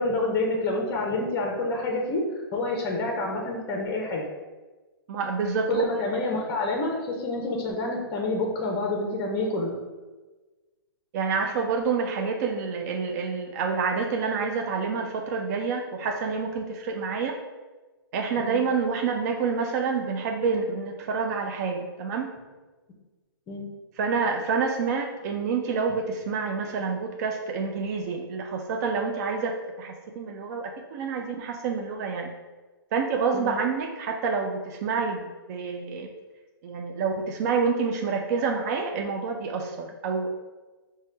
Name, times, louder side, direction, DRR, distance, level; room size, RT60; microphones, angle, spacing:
voice 1, 0.0-4.3 5.7-9.8 18.4-18.6 23.5-23.7 33.3-33.5, left 2 dB, 25° left, 0 dB, 0.6 m, -28 dB
voice 2, 5.1-5.8 11.1-17.4 18.1-22.3 24.0-32.3 32.9-36.1 36.6-40.3, right 5 dB, 45° right, 2 dB, 0.4 m, -28 dB
4.9 x 2.2 x 3.2 m, 1.2 s
hypercardioid pair, 140°, 13 cm